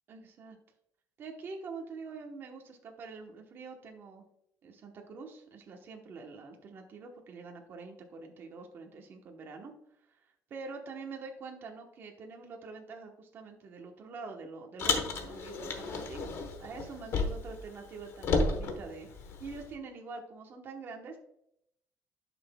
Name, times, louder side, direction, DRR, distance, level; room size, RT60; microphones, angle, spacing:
voice 1, 0.1-0.6 1.2-4.2 4.6-9.7 10.1-10.2 10.5-16.3 16.6-19.1 19.4-21.2, right 4 dB, 40° right, 2 dB, 1.1 m, -45 dB
Car, 14.8-17.6 17.9-19.7, left 3 dB, 50° left, 1.1 m, -32 dB
10.5 x 6.0 x 2.3 m, 0.75 s
cardioid pair, 170°, 6 cm